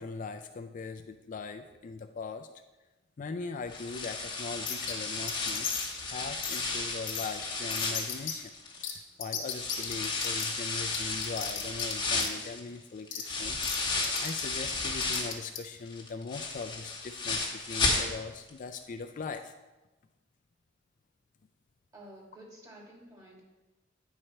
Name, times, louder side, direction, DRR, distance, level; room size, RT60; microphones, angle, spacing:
voice 1, 0.0-2.5 3.2-5.8 6.0-8.5 8.8-19.5, left 4 dB, 45° left, 6 dB, 0.4 m, -40 dB
sound 1, 3.7-9.0 9.5-15.5 15.9-18.5 18.8-18.9 19.3-19.4, left 3 dB, 25° left, 1.4 m, -33 dB
sound 2, 4.7-4.9 5.3-5.9 6.4-6.6 7.1-7.3 7.7-8.3 8.8-8.9 9.2-10.4 10.9-11.9 12.2-12.3 13.1-13.2 13.6-13.8 14.0-14.4 15.0-15.6, left 8 dB, 75° left, 1.2 m, -35 dB
voice 2, 21.9-23.4, right 1 dB, 20° right, -4 dB, 2.2 m, -51 dB
10.0 x 4.8 x 4.3 m, 1.1 s
head